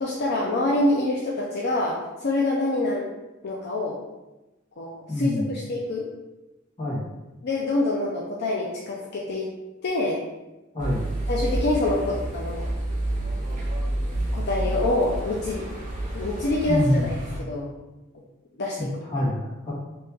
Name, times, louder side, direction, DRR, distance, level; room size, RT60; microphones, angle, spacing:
voice 1, 0.0-3.1 3.4-4.0 4.8-6.1 7.4-9.5 9.8-10.2 11.3-12.7 14.3-15.6 16.1-17.7 18.6-18.9, left 2 dB, 55° left, -3 dB, 0.4 m, -26 dB
voice 2, 5.1-5.5 6.8-7.1 10.7-11.0 16.7-17.1 18.8-19.7, left 1 dB, 25° left, -8 dB, 1.3 m, -26 dB
sound 1, 10.8-17.4, right 1 dB, 40° right, 0.9 m, -29 dB
3.0 x 2.9 x 3.5 m, 1.0 s
head